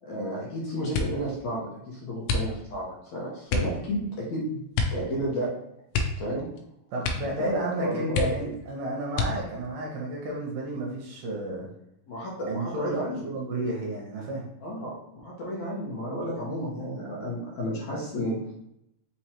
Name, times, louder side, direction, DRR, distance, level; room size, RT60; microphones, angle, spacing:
voice 1, 0.0-4.6 4.9-5.5 6.1-6.5 7.2-8.5 12.1-13.3 14.6-18.4, equal, 70° left, -5 dB, 1.9 m, -32 dB
sound 1, 0.9-1.3 2.2-2.9 3.5-3.8 4.7-5.1 5.3-5.4 5.9-6.6 7.0-7.4 7.7-7.8 8.1-8.6 9.1-9.7 10.4-11.0 11.4-11.8, left 3 dB, 85° left, 2.4 m, -29 dB
voice 2, 6.9-11.7 12.4-14.5, right 1 dB, 75° right, -3 dB, 2.3 m, -32 dB
5.6 x 3.1 x 2.8 m, 0.81 s
omnidirectional pair, 4.1 m